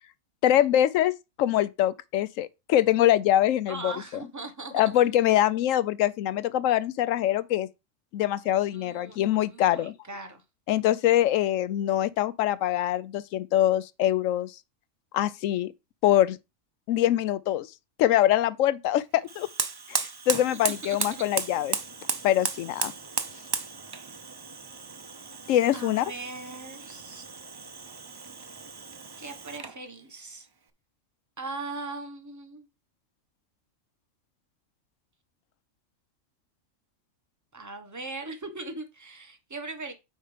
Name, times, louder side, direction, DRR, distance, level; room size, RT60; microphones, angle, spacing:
voice 1, 0.4-1.1 1.4-3.9 4.7-7.7 8.1-9.9 10.7-14.5 15.1-15.7 16.0-16.4 16.9-17.7 18.0-19.5 19.9-21.8 22.2-22.9 25.5-26.1, left 12 dB, 85° left, 1.0 m, -24 dB
voice 2, 3.7-4.8 8.7-9.2 9.5-10.4 20.8-21.1 25.7-27.2 29.2-30.5 31.4-32.7 37.5-39.9, right 3 dB, 15° right, 1.1 m, -39 dB
Fire, 19.2-29.8, right 4 dB, 40° right, 0.3 m, -35 dB
8.9 x 3.3 x 5.0 m
omnidirectional pair, 1.3 m